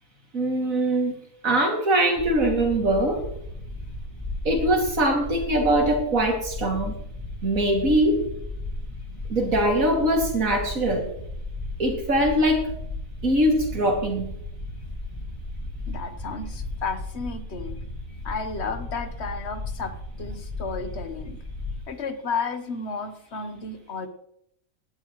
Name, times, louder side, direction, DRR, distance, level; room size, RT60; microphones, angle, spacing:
voice 1, 0.3-1.2 1.4-3.2 4.4-6.9 7.4-8.2 9.3-11.1 11.8-12.7 13.2-14.3, right 1 dB, 70° right, 1 dB, 2.9 m, -22 dB
sound 1, 2.2-21.8, left 2 dB, 25° left, 3.3 m, -35 dB
voice 2, 15.9-17.8 18.2-21.4 21.9-24.1, left 4 dB, 50° left, 9 dB, 1.3 m, -33 dB
18.0 x 11.0 x 3.1 m, 0.74 s
omnidirectional pair, 1.5 m